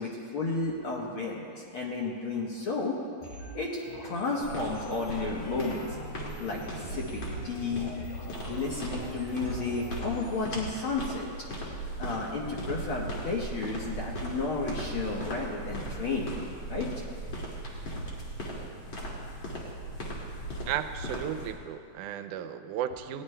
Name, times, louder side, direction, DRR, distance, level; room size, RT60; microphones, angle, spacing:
voice 1, 0.0-3.0 3.5-6.0 6.4-7.9 8.5-11.3 12.0-16.3 16.7-16.9, left 3 dB, 60° left, -2 dB, 1.5 m, -32 dB
sound 1, 3.2-10.6, equal, 90° left, 4.0 m, -43 dB
sound 2, 4.4-21.5, right 1 dB, 40° left, 2.7 m, -38 dB
voice 2, 20.7-23.2, right 10 dB, 90° right, 8 dB, 2.1 m, -34 dB
20.0 x 16.5 x 2.2 m, 2.3 s
omnidirectional pair, 3.5 m